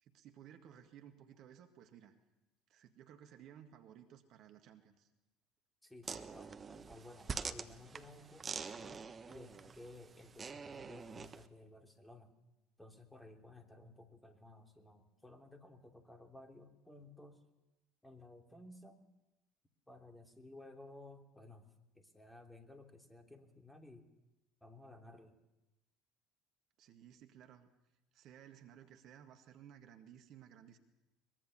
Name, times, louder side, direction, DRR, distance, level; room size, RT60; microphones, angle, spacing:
voice 1, 0.0-2.1 2.7-5.1 26.8-27.7 28.1-30.8, right 9 dB, 50° right, 6 dB, 1.8 m, -57 dB
voice 2, 5.8-12.4 12.8-17.4 18.0-19.1 19.9-24.1 24.6-25.4, left 2 dB, 5° left, 4 dB, 3.2 m, -56 dB
sound 1, 6.0-11.5, right 5 dB, 30° right, 1.4 m, -46 dB
23.0 x 22.0 x 6.9 m, 0.97 s
figure-of-eight pair, 60°, 0 cm